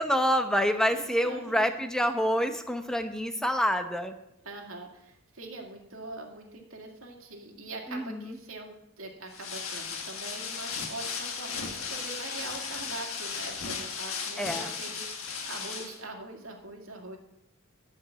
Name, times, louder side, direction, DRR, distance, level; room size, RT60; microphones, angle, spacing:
voice 1, 0.0-4.1 7.9-8.4 14.4-14.7, equal, 5° left, 7 dB, 0.8 m, -27 dB
voice 2, 0.9-1.6 4.4-17.2, right 2 dB, 85° right, 2 dB, 2.1 m, -43 dB
sound 1, 9.3-16.0, left 5 dB, 80° left, 1.6 m, -36 dB
12.0 x 5.2 x 8.1 m, 0.83 s
head